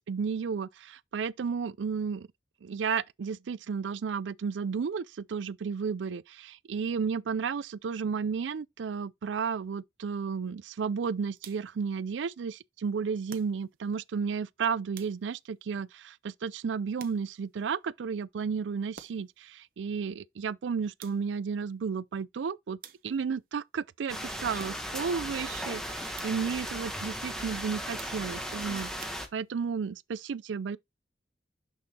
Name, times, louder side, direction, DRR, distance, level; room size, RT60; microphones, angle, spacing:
voice 1, 0.0-2.3 2.6-30.8, right 6 dB, 85° right, 0.4 m, -33 dB
sound 1, 11.4-11.9 13.3-13.9 14.9-15.5 17.0-17.6 18.9-19.5 21.0-21.5 22.8-23.4 24.6-25.1 26.1-26.6 28.0-28.5 29.0-29.7, right 7 dB, 50° right, 0.7 m, -51 dB
sound 2, 24.1-29.3, equal, 5° left, 1.0 m, -37 dB
6.2 x 5.9 x 2.8 m
head